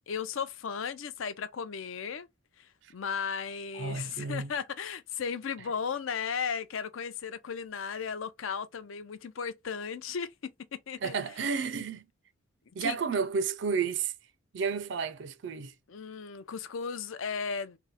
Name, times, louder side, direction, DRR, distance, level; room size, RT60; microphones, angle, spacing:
voice 1, 0.1-2.3 2.6-11.2 12.8-13.0 15.9-17.8, left 6 dB, 75° left, 0.5 m, -35 dB
voice 2, 3.7-4.5 11.0-12.0 12.8-14.1 14.5-15.7, right 5 dB, 60° right, 0.4 m, -31 dB
3.7 x 2.1 x 4.0 m
head